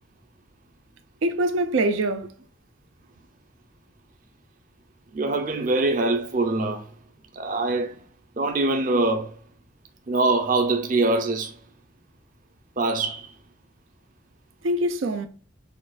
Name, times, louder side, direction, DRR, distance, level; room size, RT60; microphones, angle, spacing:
voice 1, 1.2-2.3 14.6-15.3, right 1 dB, 90° right, 0.5 m, -24 dB
voice 2, 5.1-6.9 7.3-8.0 8.4-9.4 10.1-11.5 12.8-13.3, right 2 dB, 40° right, 0.6 m, -23 dB
6.4 x 2.3 x 2.4 m
head